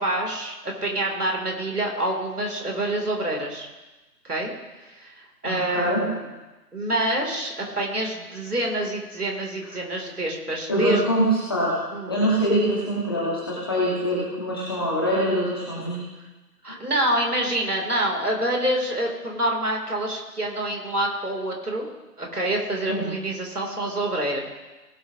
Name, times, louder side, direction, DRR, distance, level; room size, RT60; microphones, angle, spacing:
voice 1, 0.0-3.7 4.3-4.5 4.9-5.1 5.4-6.2 6.7-11.0 11.9-12.2 16.6-21.9 22.2-24.4, right 1 dB, 65° right, 1 dB, 3.5 m, -26 dB
voice 2, 5.4-6.0 10.7-11.8 12.1-16.0 16.7-16.8 22.9-23.1, equal, 15° left, -6 dB, 1.4 m, -24 dB
18.5 x 8.7 x 3.0 m, 1.1 s
figure-of-eight pair, 155°, 49 cm